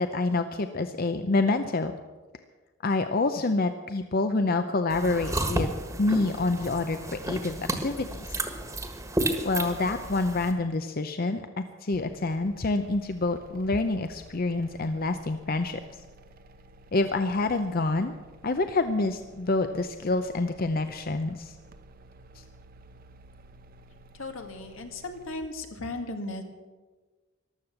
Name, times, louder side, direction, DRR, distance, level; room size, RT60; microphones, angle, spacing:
voice 1, 0.0-1.9 2.8-5.7 6.0-8.4 9.4-15.8 16.9-18.1 18.4-21.5, left 3 dB, 45° left, 8 dB, 0.6 m, -27 dB
sound 1, 4.9-10.5, right 1 dB, 15° right, 1.5 m, -32 dB
sound 2, 11.9-25.4, right 2 dB, 45° right, 0.8 m, -53 dB
voice 2, 24.1-26.4, left 2 dB, 80° left, 5 dB, 2.0 m, -36 dB
14.5 x 12.0 x 7.0 m, 1.3 s
head